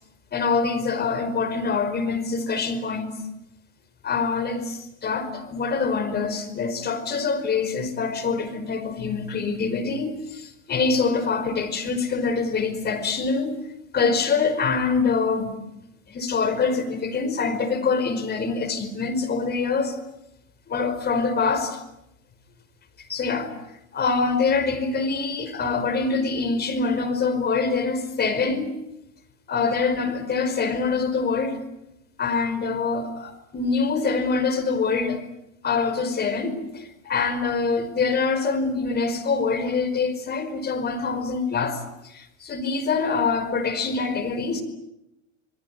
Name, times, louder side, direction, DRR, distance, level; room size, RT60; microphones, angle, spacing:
voice 1, 0.3-3.1 4.0-13.6 13.9-15.6 16.1-20.0 20.7-21.8 23.1-23.5 23.9-28.7 29.5-31.6 32.2-35.2 35.6-44.6, left 4 dB, 25° left, 5.1 m, -25 dB
27.5 x 21.0 x 9.7 m
hypercardioid pair, 100°, 39 cm